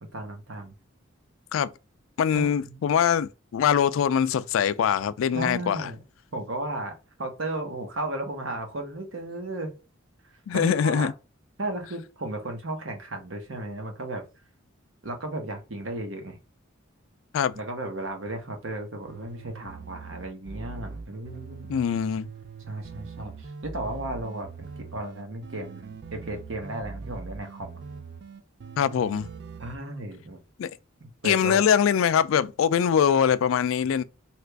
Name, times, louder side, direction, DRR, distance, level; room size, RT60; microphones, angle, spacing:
voice 1, 0.1-0.7 2.3-2.8 5.3-6.0 6.3-6.9 7.2-9.7 10.5-11.1 11.6-14.2 15.0-16.4 17.5-21.8 22.7-27.8 29.6-30.4 31.0-31.6, right 2 dB, 75° right, 1.0 m, -34 dB
voice 2, 2.2-5.9 10.5-11.1 17.3-17.5 21.7-22.3 28.8-29.3 30.6-30.7 31.2-34.0, left 8 dB, 75° left, 0.3 m, -23 dB
sound 1, 19.1-21.9 22.2-29.8, right 4 dB, 55° right, 0.4 m, -42 dB
2.9 x 2.5 x 3.3 m
head